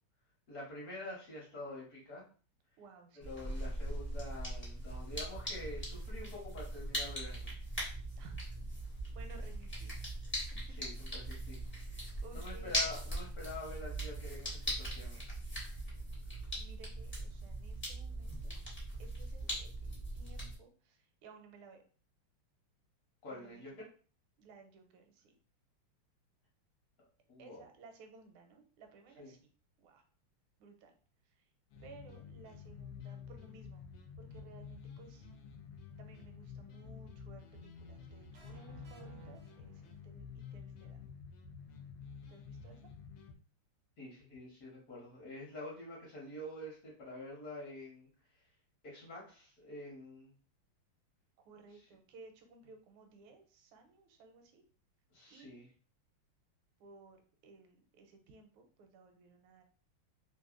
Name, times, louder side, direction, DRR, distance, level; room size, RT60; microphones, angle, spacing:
voice 1, 0.5-2.2 3.2-7.6 10.7-11.6 12.3-15.3 23.2-23.9 27.3-27.7 29.2-29.3 44.0-48.1 48.8-50.3 51.7-51.8 55.1-55.7, left 2 dB, 55° left, -4 dB, 1.2 m, -47 dB
voice 2, 2.8-3.3 8.2-8.6 9.1-9.9 10.5-10.9 11.4-11.6 12.2-12.8 16.6-18.5 19.0-21.8 23.3-23.8 24.4-25.3 27.4-29.5 29.8-30.0 30.6-30.9 31.8-33.9 34.2-35.3 36.0-41.0 42.3-42.8 51.4-54.6 55.3-55.5 56.8-59.6, right 4 dB, 85° right, 5 dB, 1.5 m, -58 dB
sound 1, 3.2-20.6, right 1 dB, 15° left, 0.4 m, -40 dB
sound 2, 31.7-43.4, left 6 dB, 75° left, 1.2 m, -50 dB
sound 3, 38.3-40.3, right 7 dB, 60° right, 0.8 m, -57 dB
3.4 x 2.6 x 2.4 m, 0.40 s
omnidirectional pair, 2.3 m